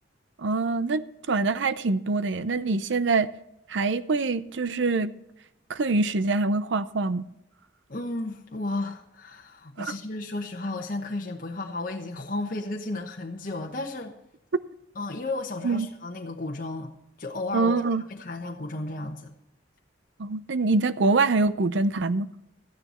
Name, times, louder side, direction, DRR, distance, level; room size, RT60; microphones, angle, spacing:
voice 1, 0.4-3.3 3.7-5.1 5.7-7.2 9.8-9.9 15.6-15.9 17.5-18.0 20.2-22.3, right 3 dB, 75° right, 0.6 m, -24 dB
voice 2, 7.9-14.1 15.0-16.9 17.2-17.8 18.1-19.3, left 2 dB, 50° left, 1.1 m, -33 dB
13.5 x 9.9 x 4.3 m
head